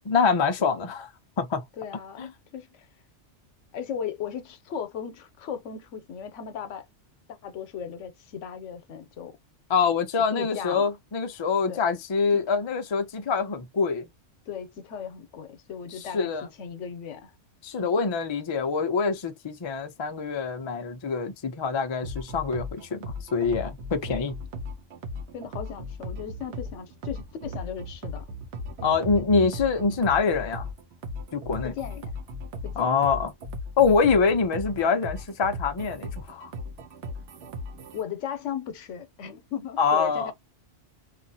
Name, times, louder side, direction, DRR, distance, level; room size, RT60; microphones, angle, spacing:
voice 1, 0.1-1.1 1.4-1.6 2.2-2.3 9.7-14.1 16.1-16.5 17.6-24.3 28.8-30.7 31.3-31.7 32.8-33.3 33.8-36.5 39.8-40.3, left 5 dB, 50° left, 0.3 m, -25 dB
voice 2, 1.8-2.9 3.7-6.9 7.3-9.4 10.1-10.9 11.7-11.8 12.3-12.4 14.5-17.3 17.8-17.9 24.1-24.3 25.3-28.3 28.8-29.1 31.6-32.1 32.6-33.0 37.9-40.3, left 8 dB, 80° left, 1.0 m, -37 dB
sound 1, 22.0-38.0, left 1 dB, 65° right, 1.0 m, -37 dB
2.8 x 2.5 x 2.7 m
omnidirectional pair, 1.2 m